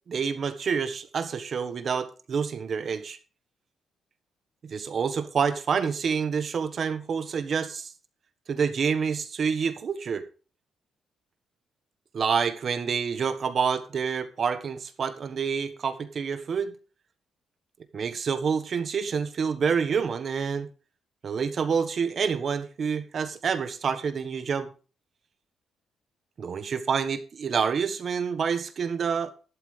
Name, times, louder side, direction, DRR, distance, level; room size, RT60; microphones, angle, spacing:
voice 1, 0.1-3.2 4.6-7.9 8.5-10.2 12.1-16.7 17.9-20.7 21.2-24.7 26.4-29.3, right 6 dB, 55° right, 1.4 m, -28 dB
11.5 x 11.5 x 3.4 m
cardioid pair, 75°, 0 cm